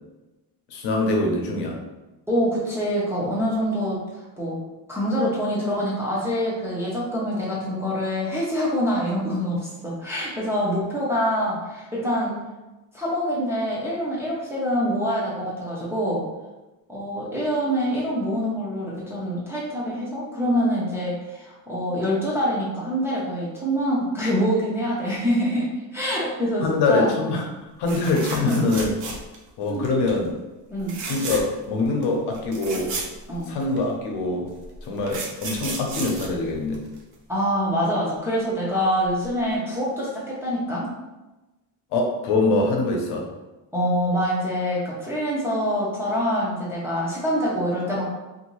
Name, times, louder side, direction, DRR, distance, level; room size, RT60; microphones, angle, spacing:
voice 1, 0.7-1.8 26.6-27.4 27.8-28.9 29.6-30.3 31.0-32.9 33.5-34.5 34.8-36.8 41.9-43.3, left 3 dB, 75° left, 0 dB, 0.8 m, -24 dB
voice 2, 2.3-4.6 4.9-12.4 12.9-16.3 16.9-27.1 28.3-28.7 29.7-29.9 30.7-31.0 33.3-33.5 37.3-40.9 43.7-48.0, equal, 5° right, -8 dB, 0.4 m, -25 dB
sound 1, 27.8-29.5 29.8-30.2 30.8-31.7 32.0-32.1 32.3-33.8 34.6-37.1 39.1-39.2 39.5-39.6, right 3 dB, 90° right, 0.7 m, -34 dB
2.7 x 2.6 x 3.0 m, 1.1 s
cardioid pair, 175°, 41 cm